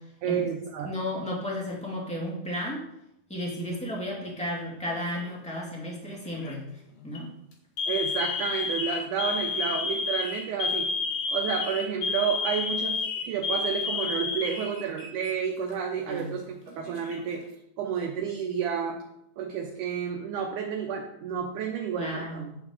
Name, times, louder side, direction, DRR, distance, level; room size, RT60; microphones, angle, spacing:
voice 1, 0.2-0.9 7.9-10.9 11.3-16.5 16.8-17.4 17.8-19.0 19.4-22.4, right 7 dB, 75° right, 1 dB, 1.9 m, -30 dB
voice 2, 0.8-2.8 3.3-6.6 7.0-7.3 16.1-16.3 22.0-22.6, left 1 dB, 5° left, -4 dB, 1.0 m, -33 dB
Alarm, 4.9-5.4 6.2-6.5 7.0-7.2 7.8-15.3 15.6-15.7 16.6-17.3, left 4 dB, 60° left, 2.8 m, -31 dB
8.7 x 4.8 x 7.0 m, 0.82 s
omnidirectional pair, 4.4 m